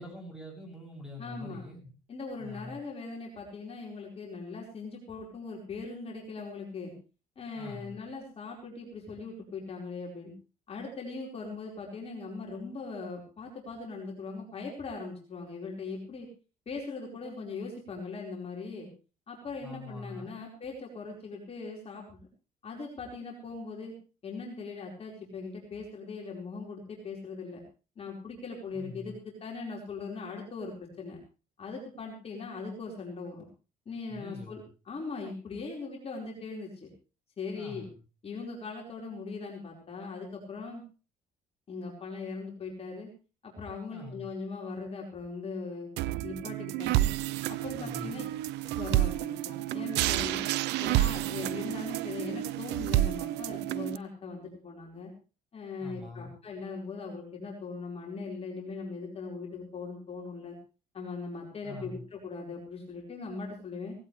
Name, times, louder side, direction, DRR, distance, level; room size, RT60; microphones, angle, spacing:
voice 1, 0.0-1.9 2.4-2.8 7.5-8.0 19.6-20.4 28.7-29.2 34.1-34.6 37.5-38.0 43.9-44.3 47.8-48.3 55.8-56.4 61.6-62.0, left 2 dB, 5° right, 2 dB, 7.5 m, -44 dB
voice 2, 1.2-1.6 2.1-6.9 7.4-10.3 10.7-16.3 16.7-18.9 19.3-22.3 22.6-23.9 24.2-27.6 28.0-31.2 31.6-33.5 33.8-34.6 34.9-36.9 37.4-37.9 38.2-40.8 41.7-43.1 43.4-45.9 46.2-47.1 47.5-48.2 48.8-50.5 50.8-55.1 55.5-60.6 60.9-63.9, left 4 dB, 35° left, -1 dB, 4.8 m, -40 dB
sound 1, 46.0-54.0, right 15 dB, 85° right, 0.7 m, -30 dB
18.0 x 16.5 x 3.3 m, 0.34 s
cardioid pair, 110°, 17 cm